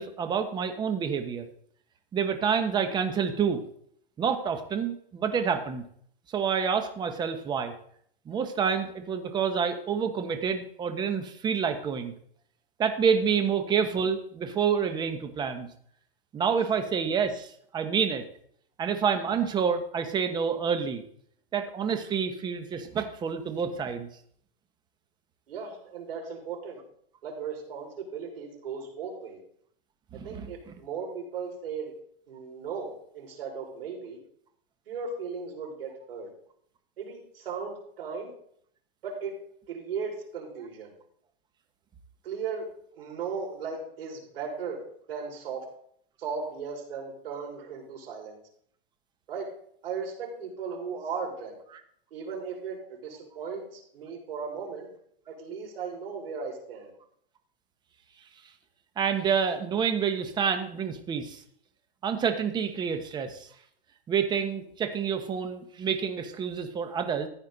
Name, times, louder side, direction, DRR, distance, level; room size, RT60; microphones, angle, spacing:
voice 1, 0.0-1.5 2.1-3.6 4.2-5.8 6.3-7.7 8.3-12.1 12.8-15.7 16.3-18.2 18.8-21.0 21.5-24.1 30.1-30.7 59.0-61.4 62.0-63.5 64.1-67.3, right 6 dB, 15° right, 7 dB, 1.1 m, -28 dB
voice 2, 25.5-26.8 27.2-29.4 30.2-31.9 32.3-34.2 34.9-36.3 37.0-38.3 39.0-39.3 39.7-40.9 42.2-42.7 42.9-44.8 45.1-45.6 46.2-48.4 49.3-49.5 49.8-51.5 52.1-54.9 55.3-56.9, right 5 dB, 70° right, -1 dB, 5.7 m, -36 dB
14.5 x 9.4 x 4.1 m, 0.66 s
hypercardioid pair, 150°, 30 cm